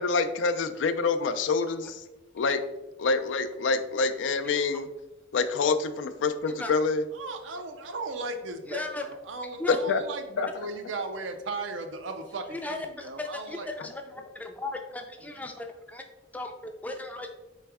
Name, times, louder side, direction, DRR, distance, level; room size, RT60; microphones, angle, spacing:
voice 1, 0.0-2.0 2.3-2.6 3.0-4.9 5.3-7.0 9.7-10.0 10.4-10.5, left 4 dB, 80° left, 10 dB, 0.4 m, -26 dB
voice 2, 7.1-13.7 15.2-15.5, right 3 dB, 80° right, 7 dB, 0.5 m, -37 dB
voice 3, 8.7-9.1 9.6-9.8 12.5-16.0 16.3-17.4, left 2 dB, 10° left, 4 dB, 0.4 m, -36 dB
4.2 x 3.2 x 3.4 m, 1.0 s
head